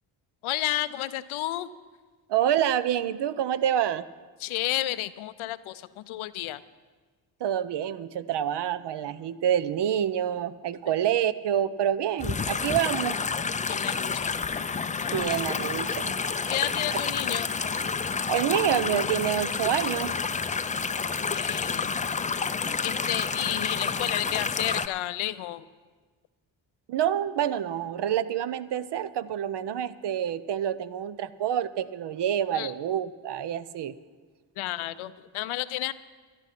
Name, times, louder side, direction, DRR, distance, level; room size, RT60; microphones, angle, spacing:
voice 1, 0.4-1.7 4.4-6.6 13.7-14.4 15.0-15.2 16.5-17.5 20.9-21.0 21.3-21.9 22.4-22.5 22.8-25.6 32.5-32.7 34.6-35.9, left 15 dB, 85° left, 14 dB, 0.6 m, -31 dB
voice 2, 2.3-4.0 7.4-13.2 15.1-16.1 18.3-20.2 26.9-33.9, right 10 dB, 60° right, 15 dB, 0.7 m, -27 dB
sound 1, 12.2-24.9, left 5 dB, 15° left, 0.4 m, -29 dB
13.0 x 10.5 x 5.9 m, 1.4 s
cardioid pair, 65°, 47 cm